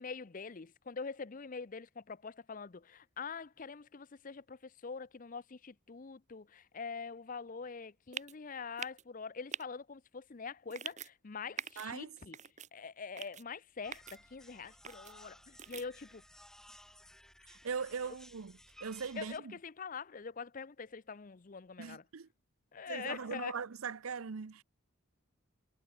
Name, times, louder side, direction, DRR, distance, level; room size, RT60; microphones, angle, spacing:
voice 1, 0.0-12.4 12.7-16.2 18.0-18.1 19.2-22.0 22.7-23.6, left 5 dB, 40° left, 0.6 m, -44 dB
sound 1, 8.1-8.3 8.8-9.0 9.5-9.6 10.7-11.1 11.6-11.9 12.3-12.7 13.2-13.4 13.9-14.2 14.8-15.1 15.6-15.8, right 7 dB, 35° right, 1.8 m, -43 dB
voice 2, 11.8-12.2 17.4-19.6 21.8-22.3 22.9-24.6, right 5 dB, 80° right, 0.7 m, -40 dB
sound 2, 13.8-19.4, left 1 dB, ahead, 1.3 m, -58 dB
head